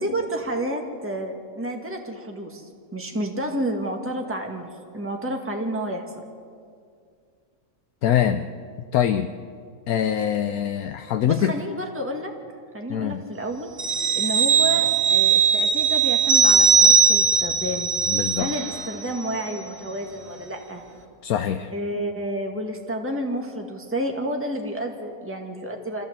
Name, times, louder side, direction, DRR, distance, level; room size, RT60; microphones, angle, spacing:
voice 1, 0.0-6.0 11.3-12.3 12.7-13.7 14.1-17.9 18.4-20.8 21.7-26.0, right 1 dB, 10° right, 2 dB, 1.9 m, -30 dB
voice 2, 8.0-8.5 8.9-9.3 9.9-11.6 12.9-13.2 18.1-18.6 21.2-21.7, left 10 dB, 75° left, 8 dB, 1.2 m, -23 dB
sound 1, 13.8-18.9 19.2-19.4, right 5 dB, 85° right, 3.1 m, -19 dB
26.5 x 14.5 x 8.1 m, 2.2 s
omnidirectional pair, 1.6 m